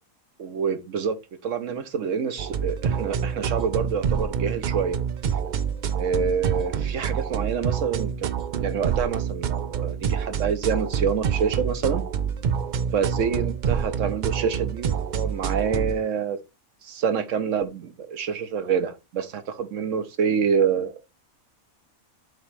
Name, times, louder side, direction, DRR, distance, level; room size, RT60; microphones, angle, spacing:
voice 1, 0.4-1.2 1.4-5.0 5.9-8.3 8.6-12.1 12.9-16.4 16.8-20.9, right 6 dB, 65° right, 1.2 m, -27 dB
sound 1, 2.4-16.0, right 7 dB, 85° right, 0.4 m, -27 dB
7.6 x 3.1 x 4.7 m
omnidirectional pair, 1.5 m